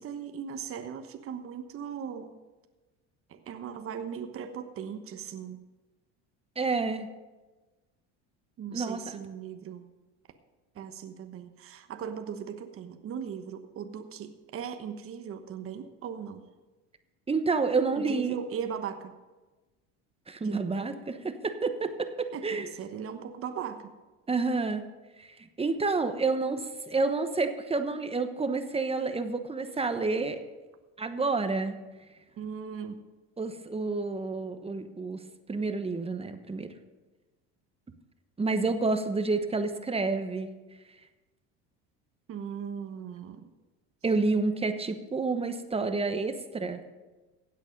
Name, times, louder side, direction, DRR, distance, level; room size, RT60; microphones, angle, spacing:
voice 1, 0.0-2.3 3.3-5.6 8.6-9.9 10.7-16.5 18.0-19.1 20.4-20.9 22.3-23.9 32.4-33.0 42.3-43.5, right 7 dB, 40° right, 7 dB, 1.1 m, -38 dB
voice 2, 6.6-7.1 8.7-9.0 17.3-18.3 20.3-22.7 24.3-24.8 25.2-25.3 25.6-30.4 31.0-31.8 33.4-35.2 35.5-36.7 38.4-40.5 44.0-46.8, right 3 dB, 15° right, 8 dB, 1.1 m, -29 dB
16.0 x 8.3 x 5.3 m, 1.2 s
supercardioid pair, 95°, 33 cm